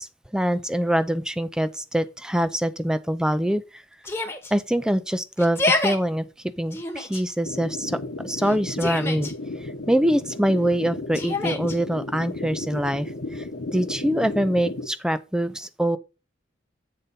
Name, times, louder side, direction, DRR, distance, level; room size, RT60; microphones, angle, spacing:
voice 1, 0.0-3.8 4.5-6.3 6.6-8.0 8.2-9.3 9.6-13.5 13.7-16.0, equal, 5° right, 0.4 m, -24 dB
Yell, 4.0-4.5 5.4-6.0 6.7-7.2 8.4-9.3 11.1-11.8, left 2 dB, 15° left, 1.2 m, -27 dB
sound 1, 7.4-14.9, left 2 dB, 85° left, 1.0 m, -34 dB
8.2 x 4.0 x 5.3 m
head